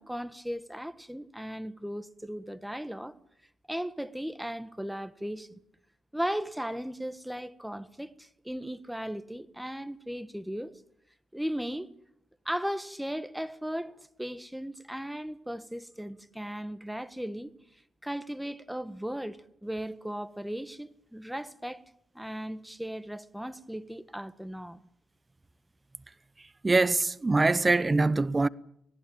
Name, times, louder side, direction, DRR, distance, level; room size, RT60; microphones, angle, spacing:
voice 1, 0.0-3.1 3.7-5.6 6.1-10.7 11.3-11.9 12.4-17.5 18.0-21.8 22.1-24.8, equal, 5° right, 1.5 m, -36 dB
voice 2, 26.6-28.5, right 3 dB, 25° right, 1.0 m, -23 dB
25.5 x 18.0 x 8.8 m
hypercardioid pair, 45°, 0 cm